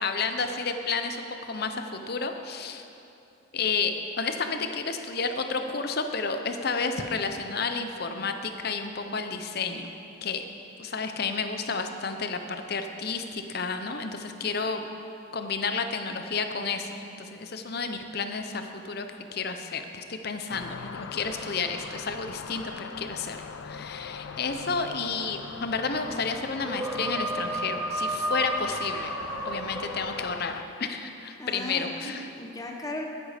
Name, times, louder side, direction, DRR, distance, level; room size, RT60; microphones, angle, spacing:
voice 1, 0.0-2.8 3.5-9.9 10.2-10.4 10.8-12.4 12.7-14.9 15.3-19.1 19.3-29.1 29.4-32.3, left 4 dB, 50° left, 7 dB, 0.7 m, -31 dB
sound 1, 20.5-30.6, left 6 dB, 70° left, 0.4 m, -41 dB
sound 2, 26.6-30.7, right 1 dB, 10° right, 0.6 m, -32 dB
voice 2, 31.4-33.0, left 1 dB, 15° left, 1 dB, 0.9 m, -36 dB
12.5 x 9.9 x 5.1 m, 2.8 s
head